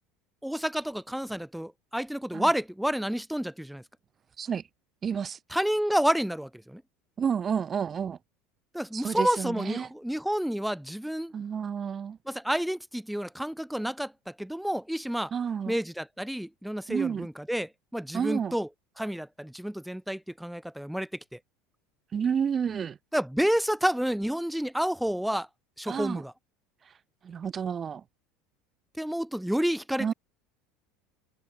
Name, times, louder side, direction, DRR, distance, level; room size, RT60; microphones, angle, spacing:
voice 1, 0.4-3.8 5.5-6.8 8.7-11.3 12.3-15.3 15.7-18.7 19.0-21.4 23.1-25.5 25.8-26.3 29.0-30.1, equal, ahead, 1.2 m, -29 dB
voice 2, 5.0-5.4 7.2-8.2 8.9-9.9 11.3-12.2 15.3-15.8 16.9-17.3 18.1-18.5 22.1-23.0 25.9-26.2 27.2-28.0 30.0-30.1, right 7 dB, 35° right, 1.2 m, -30 dB
supercardioid pair, 95°, 0 cm